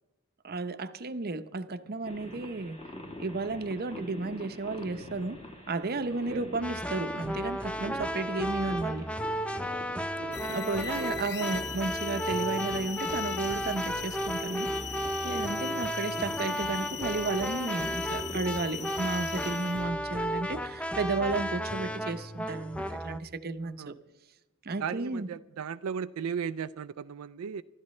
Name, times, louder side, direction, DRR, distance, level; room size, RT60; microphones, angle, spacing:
voice 1, 0.4-2.8 3.2-5.4 5.7-9.1 10.4-14.7 15.2-24.0 24.6-25.3, right 3 dB, 45° right, 11 dB, 0.7 m, -33 dB
sound 1, 2.0-19.8, left 1 dB, 30° left, 2.1 m, -46 dB
sound 2, 6.6-23.2, equal, 5° left, 0.5 m, -34 dB
voice 2, 9.9-10.9 15.6-15.8 23.6-23.9 24.8-27.6, right 7 dB, 85° right, 11 dB, 0.4 m, -37 dB
sound 3, 10.3-19.9, left 10 dB, 55° left, 1.1 m, -40 dB
25.5 x 13.0 x 3.2 m, 1.0 s
head